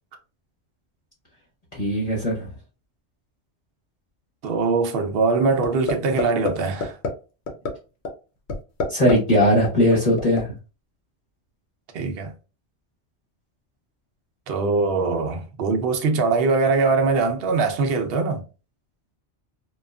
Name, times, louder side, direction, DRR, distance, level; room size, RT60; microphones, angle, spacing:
voice 1, 1.8-2.5 8.9-10.5, equal, 35° left, 1.0 m, -19 dB
voice 2, 4.4-7.0 11.9-12.3 14.5-18.4, right 4 dB, 65° right, 0.7 m, -22 dB
sound 1, 5.6-5.9 6.2-6.5 6.8-7.1 7.5-7.7 8.0-8.1 8.5-9.1 9.4-10.4, left 3 dB, 70° left, 0.9 m, -24 dB
2.9 x 2.3 x 2.3 m
omnidirectional pair, 1.2 m